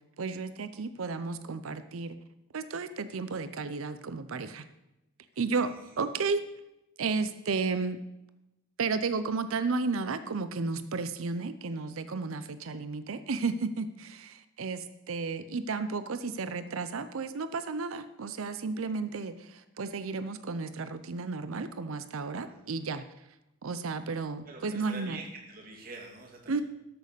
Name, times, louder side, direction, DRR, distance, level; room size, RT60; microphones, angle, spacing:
voice 1, 0.2-2.2 2.5-4.6 5.4-6.4 7.0-8.0 8.8-23.0 23.6-25.2 26.5-26.6, right 4 dB, 70° right, 12 dB, 0.6 m, -33 dB
voice 2, 5.3-6.0 22.4-22.6 24.4-26.6, right 3 dB, 40° right, -1 dB, 2.7 m, -46 dB
13.5 x 6.5 x 6.7 m, 0.93 s
head